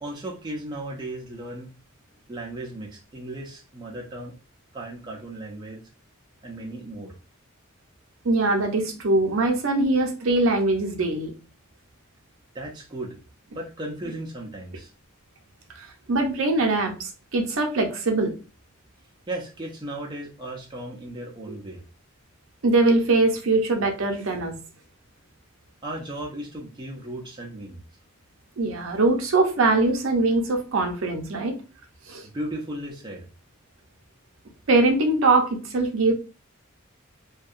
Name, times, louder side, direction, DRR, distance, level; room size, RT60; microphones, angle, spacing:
voice 1, 0.0-1.7 2.3-4.3 4.7-5.8 6.4-7.1 12.5-13.2 13.5-14.9 19.3-21.8 25.8-27.8 32.2-33.2, right 1 dB, 20° right, -1 dB, 0.4 m, -36 dB
voice 2, 8.2-11.3 15.8-18.3 21.5-21.6 22.6-24.6 28.6-31.6 32.1-32.2 34.7-36.1, right 2 dB, 70° right, 3 dB, 0.6 m, -22 dB
2.7 x 2.2 x 2.4 m, 0.33 s
head